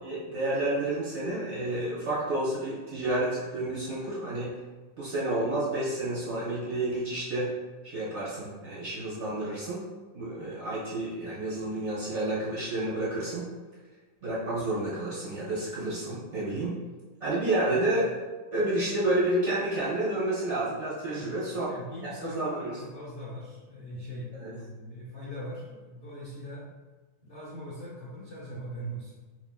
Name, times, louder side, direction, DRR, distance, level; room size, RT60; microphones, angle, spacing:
voice 1, 0.0-4.5 5.0-7.5 7.8-9.8 10.1-13.5 14.2-16.7 17.2-18.1 18.5-21.7 22.2-22.7 24.4-24.5, right 1 dB, 45° right, -8 dB, 1.1 m, -30 dB
voice 2, 21.1-26.6 27.2-29.1, equal, 85° left, -8 dB, 0.6 m, -41 dB
4.2 x 3.2 x 2.2 m, 1.3 s
omnidirectional pair, 2.3 m